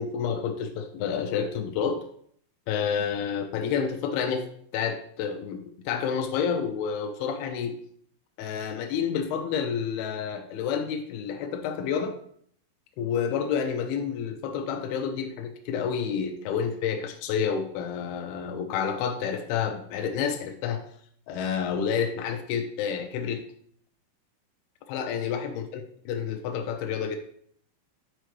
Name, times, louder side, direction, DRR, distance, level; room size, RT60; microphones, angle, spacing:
voice 1, 0.0-2.0 2.7-4.4 4.7-7.8 8.4-12.2 13.0-20.8 21.3-23.4 24.9-25.8 26.1-27.2, left 7 dB, 85° left, 5 dB, 2.6 m, -29 dB
8.9 x 5.5 x 3.2 m, 0.63 s
omnidirectional pair, 4.5 m